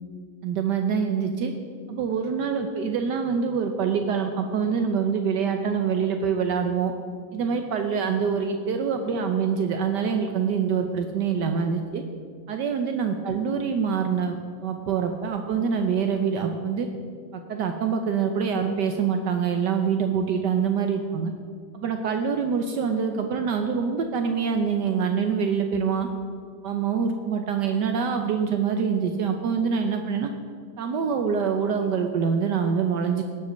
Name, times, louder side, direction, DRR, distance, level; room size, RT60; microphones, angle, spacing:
voice 1, 0.4-1.5 1.9-6.9 7.3-12.0 12.5-16.9 17.3-21.3 21.7-26.1 26.6-30.3 30.8-33.2, right 6 dB, 70° right, 5 dB, 1.3 m, -25 dB
18.0 x 6.3 x 6.3 m, 2.1 s
omnidirectional pair, 2.0 m